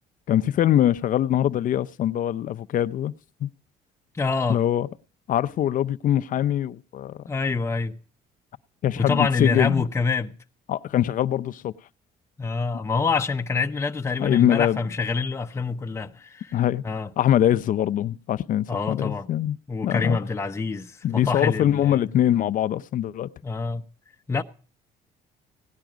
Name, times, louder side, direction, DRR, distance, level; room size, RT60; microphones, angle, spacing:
voice 1, 0.3-3.1 3.4-3.5 4.5-4.9 5.3-7.2 8.8-9.9 10.7-11.7 14.2-14.8 16.5-16.8 17.2-20.2 21.0-23.3, left 11 dB, 50° left, 0.6 m, -23 dB
voice 2, 4.1-4.6 7.3-8.0 9.0-10.4 12.4-16.5 16.8-17.1 18.7-19.3 19.7-22.1 23.4-23.8 24.3-24.4, left 4 dB, 15° left, 0.8 m, -26 dB
17.0 x 10.5 x 4.9 m
cardioid pair, 110°, 17 cm